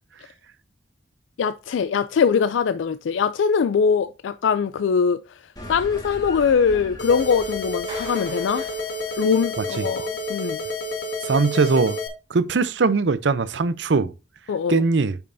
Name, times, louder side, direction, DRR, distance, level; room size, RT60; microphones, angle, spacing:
voice 1, 1.4-5.4 5.7-8.6 9.2-10.6 14.5-14.8, left 6 dB, 85° left, 0.4 m, -22 dB
sound 1, 5.6-10.3, equal, 20° left, 1.9 m, -41 dB
Electronic Siren, 7.0-12.1, left 2 dB, 65° left, 1.6 m, -30 dB
Clapping, 7.9-9.5, right 3 dB, 30° right, 3.2 m, -42 dB
voice 2, 9.6-9.9 11.2-12.0 12.3-14.1 14.7-15.2, right 4 dB, 70° right, 0.6 m, -21 dB
9.1 x 5.4 x 2.6 m
head